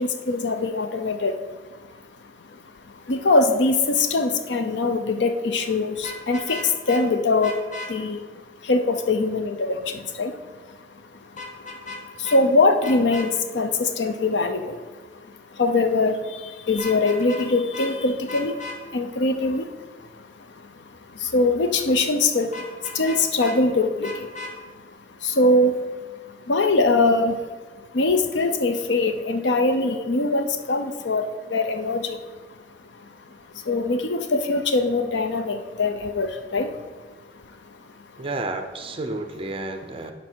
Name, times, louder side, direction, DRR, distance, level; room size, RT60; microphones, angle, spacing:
voice 1, 0.0-10.8 11.1-32.6 32.9-37.0 37.5-38.2, left 3 dB, 70° left, 8 dB, 0.6 m, -24 dB
Vehicle horn car horn honking, 6.0-7.0 7.4-7.9 11.4-12.0 12.2-12.4 12.8-13.3 16.7-17.5 17.7-17.9 18.3-18.8 22.5-23.6 24.0-24.5, left 2 dB, 40° left, 1.1 m, -35 dB
voice 2, 38.2-40.1, right 2 dB, 30° right, 6 dB, 0.6 m, -31 dB
11.0 x 4.1 x 4.5 m, 1.3 s
head